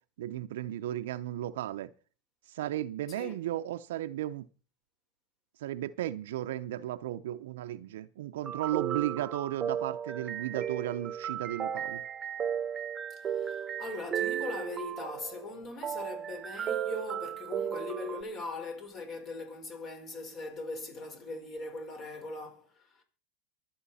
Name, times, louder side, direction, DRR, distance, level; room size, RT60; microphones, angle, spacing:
voice 1, 0.2-1.9 2.5-4.5 5.6-12.0, right 13 dB, 75° right, 0.7 m, -35 dB
sound 1, 8.4-18.2, right 9 dB, 25° right, 1.1 m, -35 dB
voice 2, 13.1-23.0, left 3 dB, 40° left, 4.5 m, -41 dB
23.5 x 7.9 x 4.2 m
hypercardioid pair, 100°, 0 cm